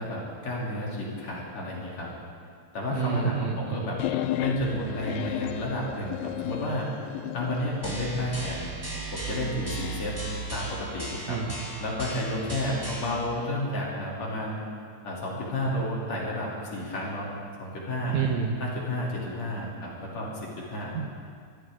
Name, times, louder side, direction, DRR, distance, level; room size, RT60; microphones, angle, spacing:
voice 1, 0.0-2.1 2.7-4.0 4.4-6.9 7.3-8.7 9.1-10.2 10.5-11.4 11.8-14.6 15.0-17.3 17.6-18.2 18.6-20.9, left 1 dB, 50° left, -4 dB, 4.2 m, -31 dB
voice 2, 2.9-3.9 11.3-11.5 18.1-18.6 20.9-21.1, right 6 dB, 65° right, 2 dB, 2.1 m, -29 dB
sound 1, 4.0-7.7, left 13 dB, 80° left, 2.2 m, -32 dB
sound 2, 7.8-13.2, right 2 dB, 5° right, 2.8 m, -36 dB
24.5 x 15.5 x 3.8 m, 2.1 s
omnidirectional pair, 4.1 m